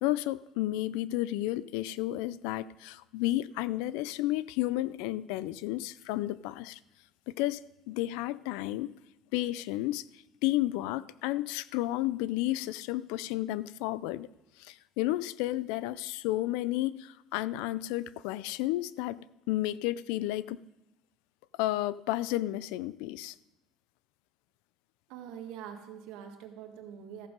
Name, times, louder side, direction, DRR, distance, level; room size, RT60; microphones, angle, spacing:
voice 1, 0.0-6.8 7.3-8.9 9.3-10.0 10.4-14.3 14.6-19.2 19.5-20.6 21.6-23.3, left 16 dB, 90° left, 0.4 m, -32 dB
voice 2, 25.1-27.3, right 9 dB, 85° right, 1.6 m, -44 dB
14.0 x 7.2 x 5.3 m
cardioid pair, 130°, 0 cm